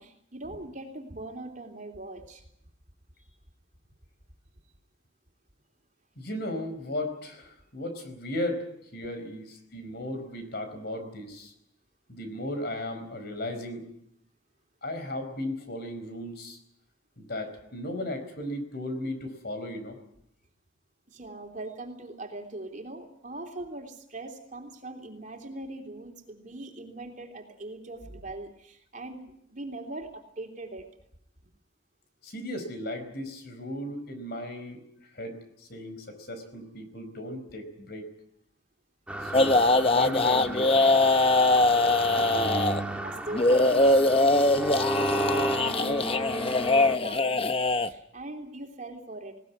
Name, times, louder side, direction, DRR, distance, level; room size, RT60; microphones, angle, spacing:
voice 1, 0.0-2.4 3.2-3.3 21.1-30.9 41.4-44.9 45.2-49.4, right 2 dB, 35° right, 3 dB, 3.3 m, -41 dB
voice 2, 6.2-8.7 8.9-11.5 12.1-13.9 14.8-16.6 17.2-20.0 32.2-34.8 35.1-38.1 39.2-41.0, left 1 dB, 50° left, 8 dB, 4.6 m, -36 dB
sound 1, 39.1-47.0, right 1 dB, 5° right, 1.8 m, -33 dB
sound 2, 39.3-42.8 43.3-47.9, left 2 dB, 25° left, 0.9 m, -22 dB
20.0 x 19.0 x 9.5 m, 0.74 s
head